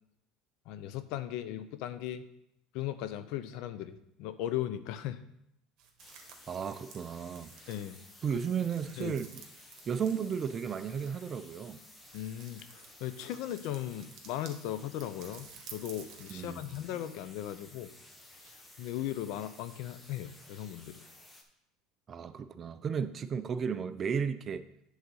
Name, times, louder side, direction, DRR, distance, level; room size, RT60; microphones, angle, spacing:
voice 1, 0.7-2.2 2.7-5.2 7.7-8.0 9.0-9.1 12.1-17.9 18.4-21.0, left 12 dB, 65° left, 0.6 m, -38 dB
sound 1, 5.8-14.6 15.0-16.9 17.1-19.0, right 7 dB, 55° right, 1.5 m, -54 dB
sound 2, 6.0-21.4, left 1 dB, 15° left, 1.1 m, -55 dB
voice 2, 6.5-7.5 8.2-9.4 9.9-11.8 16.3-16.9 22.1-24.6, right 7 dB, 30° right, 0.4 m, -34 dB
8.0 x 4.0 x 6.3 m
supercardioid pair, 125°, 0 cm